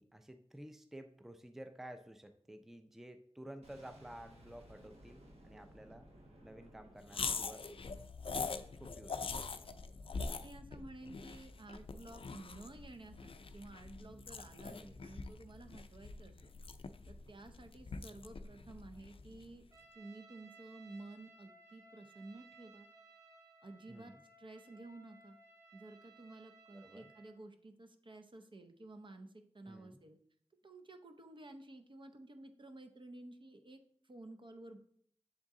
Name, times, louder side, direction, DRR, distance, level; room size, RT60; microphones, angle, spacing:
voice 1, 0.0-6.1 6.4-7.6 8.7-9.2 14.6-15.0 23.9-24.2 26.7-27.1 29.6-30.0, right 1 dB, 5° right, 8 dB, 0.4 m, -52 dB
Boom, 3.6-8.5, equal, 75° right, 1.2 m, -59 dB
sound 1, 7.1-19.6, left 4 dB, 55° left, 0.4 m, -44 dB
voice 2, 10.4-16.5 17.1-19.6 19.9-22.9 23.6-25.4 25.7-30.2 30.6-34.8, right 2 dB, 50° right, 6 dB, 0.6 m, -53 dB
Trumpet, 19.7-27.4, right 3 dB, 30° right, 1.9 m, -61 dB
7.3 x 3.8 x 3.6 m, 0.65 s
wide cardioid pair, 50°, 11 cm